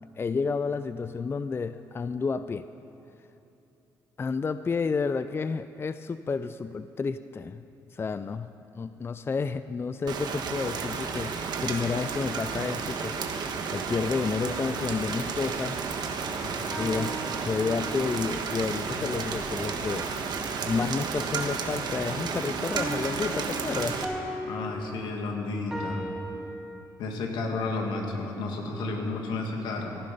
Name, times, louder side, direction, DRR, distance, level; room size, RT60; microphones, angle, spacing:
voice 1, 0.2-2.6 4.2-7.6 7.9-11.4 11.6-15.8 16.8-24.0, left 4 dB, 30° left, 12 dB, 0.4 m, -31 dB
sound 1, 10.0-24.9, left 3 dB, 55° left, 2.6 m, -50 dB
Rain, 10.1-24.0, right 5 dB, 65° right, 1.2 m, -32 dB
sound 2, 16.3-18.1 22.7-26.2, right 1 dB, 5° right, 3.4 m, -38 dB
voice 2, 24.5-26.0 27.0-29.9, left 3 dB, 80° left, 1 dB, 2.0 m, -32 dB
16.0 x 11.0 x 5.4 m, 2.9 s
supercardioid pair, 70°, 8 cm